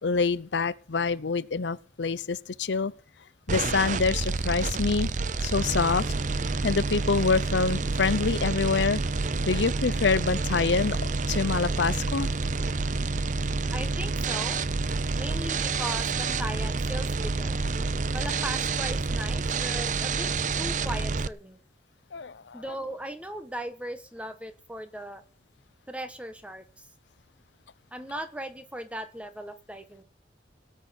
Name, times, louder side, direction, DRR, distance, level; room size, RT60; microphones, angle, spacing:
voice 1, 0.0-2.9 3.5-5.1 5.4-6.1 6.6-9.0 9.5-11.0 11.3-12.3 22.1-22.6, left 4 dB, 75° left, 0.6 m, -26 dB
sound 1, 3.5-21.3, right 3 dB, 45° right, 0.6 m, -28 dB
voice 2, 13.7-14.6 15.2-17.6 18.1-20.3 20.6-21.6 22.5-25.2 25.9-26.6 27.9-30.0, right 1 dB, 5° right, 1.3 m, -38 dB
18.0 x 6.5 x 8.2 m
head